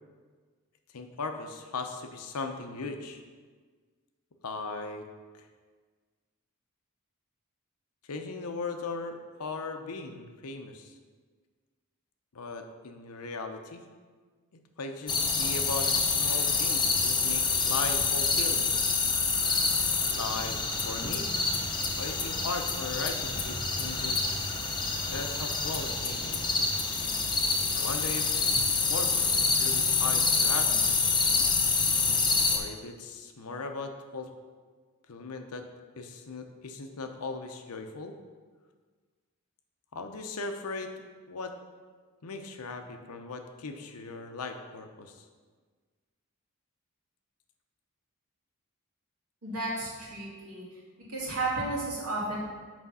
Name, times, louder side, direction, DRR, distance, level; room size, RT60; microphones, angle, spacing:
voice 1, 0.9-3.2 4.4-5.0 5.3-5.5 8.1-10.9 12.3-13.8 14.8-18.7 20.1-20.6 20.8-21.3 22.0-24.8 25.1-26.4 27.7-28.3 28.9-31.1 32.5-34.3 35.1-35.6 36.0-38.2 39.9-41.5 42.2-45.3, left 3 dB, 90° left, 6 dB, 0.7 m, -38 dB
sound 1, 15.1-32.6, left 4 dB, 20° left, 0.7 m, -27 dB
voice 2, 49.4-50.6 51.1-52.4, right 2 dB, 85° right, -5 dB, 2.3 m, -33 dB
6.1 x 5.0 x 5.6 m, 1.5 s
head